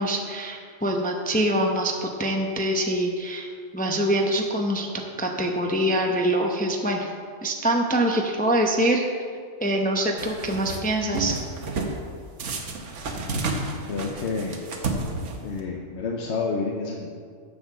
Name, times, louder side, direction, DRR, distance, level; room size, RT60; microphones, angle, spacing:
voice 1, 0.0-7.1 7.4-9.1 9.6-11.4, right 1 dB, 10° left, 1 dB, 0.6 m, -24 dB
sound 1, 10.2-10.8 11.1-12.0 12.4-15.6, right 3 dB, 80° right, 1.4 m, -30 dB
voice 2, 13.9-14.7 15.4-17.1, left 4 dB, 70° left, 0 dB, 1.1 m, -29 dB
7.9 x 7.1 x 6.8 m, 2.1 s
omnidirectional pair, 1.2 m